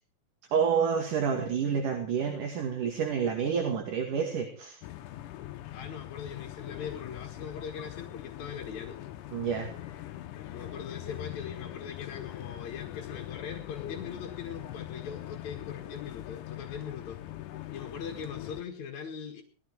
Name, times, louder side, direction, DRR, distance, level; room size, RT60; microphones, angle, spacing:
voice 1, 0.5-4.8 9.3-9.7, right 6 dB, 65° right, 2 dB, 3.7 m, -29 dB
sound 1, 4.8-18.6, left 13 dB, 75° left, 2.3 m, -42 dB
voice 2, 5.7-9.0 10.5-17.2 17.7-19.4, left 7 dB, 60° left, 2 dB, 2.9 m, -41 dB
19.5 x 14.0 x 4.7 m, 0.40 s
omnidirectional pair, 4.0 m